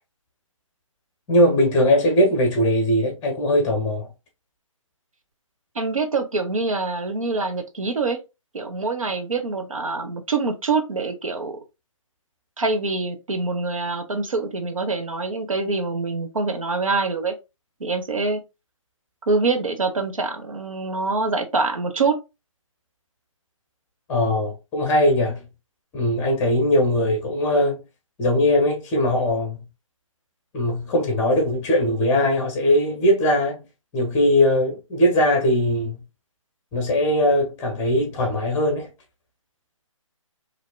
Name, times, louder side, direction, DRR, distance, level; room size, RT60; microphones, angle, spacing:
voice 1, 1.3-4.1 24.1-25.5 25.9-27.8 28.2-29.6 30.5-33.6 33.9-36.0 36.7-38.9, left 1 dB, 15° left, 1.0 m, -20 dB
voice 2, 5.7-8.2 8.5-11.6 12.6-17.3 17.8-18.4 19.3-22.2, right 3 dB, 80° right, 0.9 m, -25 dB
4.3 x 2.8 x 2.2 m
figure-of-eight pair, 145°, 17 cm